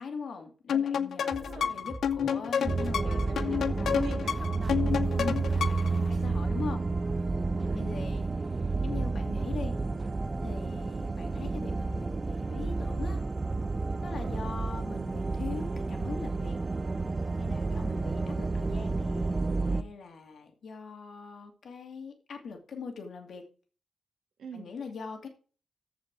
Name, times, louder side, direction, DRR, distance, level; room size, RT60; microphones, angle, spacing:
voice 1, 0.0-4.2 5.2-6.9 7.7-9.8 10.4-13.2 14.0-16.6 17.4-19.4 19.6-23.4 24.5-25.3, left 5 dB, 65° left, 4 dB, 2.5 m, -42 dB
sound 1, 0.7-6.0, left 7 dB, 85° left, 0.6 m, -30 dB
sound 2, 1.3-11.0, right 1 dB, 5° right, 1.3 m, -47 dB
voice 2, 1.3-1.8 3.0-5.2 6.1-6.2 7.4-7.9 14.2-14.5 24.4-24.7, right 5 dB, 80° right, 3 dB, 2.3 m, -44 dB
sound 3, 2.7-19.8, right 3 dB, 25° right, 0.5 m, -31 dB
14.0 x 5.2 x 4.7 m, 0.38 s
wide cardioid pair, 155°, 0 cm